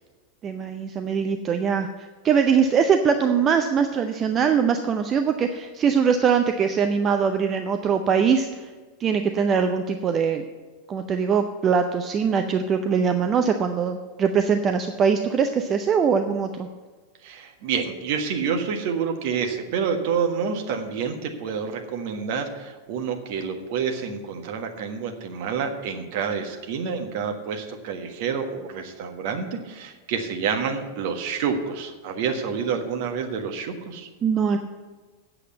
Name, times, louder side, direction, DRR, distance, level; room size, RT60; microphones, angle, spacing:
voice 1, 0.4-8.7 9.0-10.4 10.9-16.7 34.2-34.6, right 6 dB, 25° right, 7 dB, 0.6 m, -22 dB
voice 2, 17.2-34.1, right 6 dB, 50° right, 5 dB, 1.4 m, -28 dB
8.4 x 7.7 x 8.0 m, 1.4 s
figure-of-eight pair, 90°, 0 cm